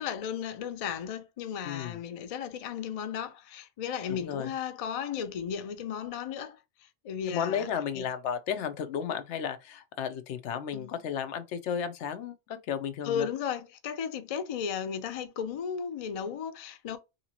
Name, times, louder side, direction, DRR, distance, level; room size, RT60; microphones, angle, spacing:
voice 1, 0.0-7.7 8.0-8.1 10.7-10.9 13.0-17.0, left 8 dB, 60° left, 0.3 m, -35 dB
voice 2, 1.6-2.0 4.1-4.5 7.3-13.3, left 8 dB, 85° left, 0.9 m, -33 dB
2.8 x 2.8 x 2.8 m
omnidirectional pair, 1.1 m